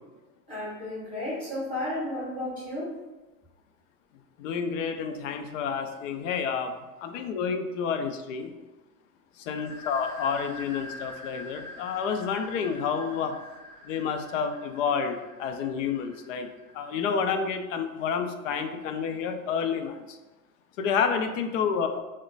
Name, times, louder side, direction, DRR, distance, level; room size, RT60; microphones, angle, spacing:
voice 1, 0.5-2.9, left 1 dB, 10° left, -9 dB, 1.5 m, -33 dB
voice 2, 4.4-6.7 7.0-8.5 9.4-13.4 13.8-16.5 16.7-20.2 20.8-21.9, left 6 dB, 65° left, 7 dB, 0.5 m, -29 dB
sound 1, 9.5-17.0, left 1 dB, 35° left, 1.1 m, -45 dB
3.0 x 2.1 x 3.9 m, 1.1 s
supercardioid pair, 155°, 42 cm